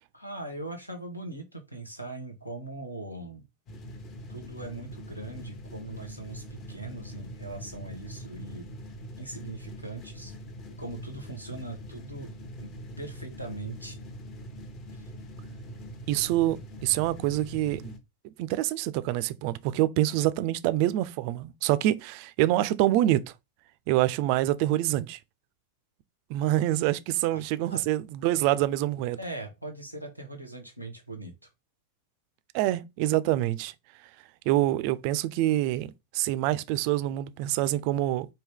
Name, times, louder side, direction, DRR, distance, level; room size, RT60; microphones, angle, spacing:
voice 1, 0.1-3.4 4.3-8.7 9.2-10.3 10.8-12.3 12.6-14.0 14.9-15.1 27.3-27.8 29.2-31.5, right 2 dB, 90° left, 1.1 m, -40 dB
sound 1, 3.7-18.0, equal, 35° left, 0.9 m, -43 dB
voice 2, 16.1-17.9 18.4-23.2 23.9-25.2 26.3-29.2 32.5-33.7 34.5-38.3, right 14 dB, 45° right, 0.4 m, -26 dB
4.6 x 2.7 x 3.6 m
figure-of-eight pair, 90°, 0 cm